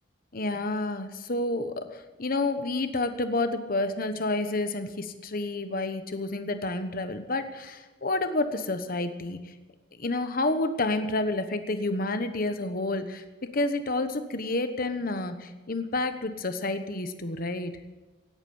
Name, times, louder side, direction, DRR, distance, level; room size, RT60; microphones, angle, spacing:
voice 1, 0.3-9.5 10.0-13.2 13.5-17.7, left 2 dB, 50° left, 9 dB, 1.1 m, -29 dB
18.0 x 8.9 x 7.1 m, 1.2 s
head